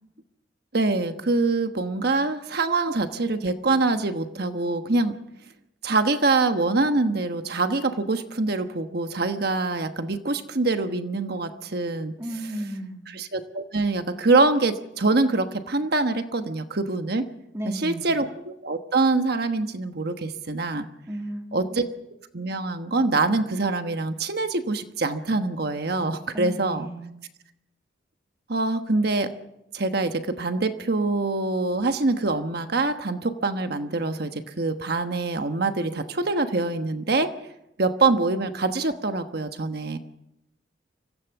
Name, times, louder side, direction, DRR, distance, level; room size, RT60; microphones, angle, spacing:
voice 1, 0.7-5.1 5.8-12.1 13.1-17.3 17.6-20.9 21.5-21.9 22.3-26.9 28.5-29.3 29.7-37.3 37.8-40.0, right 3 dB, 55° right, 8 dB, 1.2 m, -24 dB
voice 2, 12.2-13.1 17.5-18.2 21.1-21.9 26.3-27.1, equal, 15° right, 4 dB, 1.9 m, -34 dB
25.0 x 16.0 x 7.1 m, 0.87 s
head